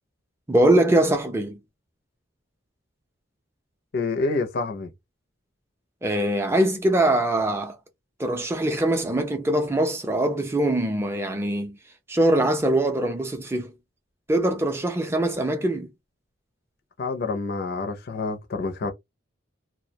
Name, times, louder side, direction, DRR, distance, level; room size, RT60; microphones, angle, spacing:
voice 1, 0.5-1.6 6.0-7.8 8.2-11.8 12.1-13.7 14.3-15.9, right 1 dB, 15° right, 0.4 m, -22 dB
voice 2, 3.9-4.9 17.0-18.9, left 3 dB, 50° left, 0.4 m, -27 dB
2.2 x 2.1 x 2.7 m
head